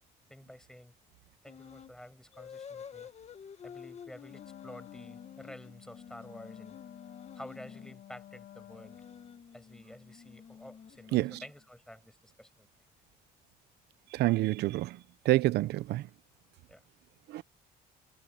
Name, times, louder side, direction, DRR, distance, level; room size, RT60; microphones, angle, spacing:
voice 1, 0.3-0.9 1.4-3.1 3.6-6.8 7.4-9.1 9.5-12.7 16.7-16.8, left 1 dB, 5° left, 7.3 m, -50 dB
sound 1, 1.5-1.9 2.3-8.0 8.7-11.6, left 7 dB, 40° left, 1.7 m, -50 dB
Wind instrument woodwind instrument, 4.3-9.4, left 12 dB, 65° left, 5.9 m, -52 dB
voice 2, 14.1-15.0 15.2-16.0 17.3-17.4, right 18 dB, 75° right, 0.8 m, -27 dB
cardioid pair, 110°, 17 cm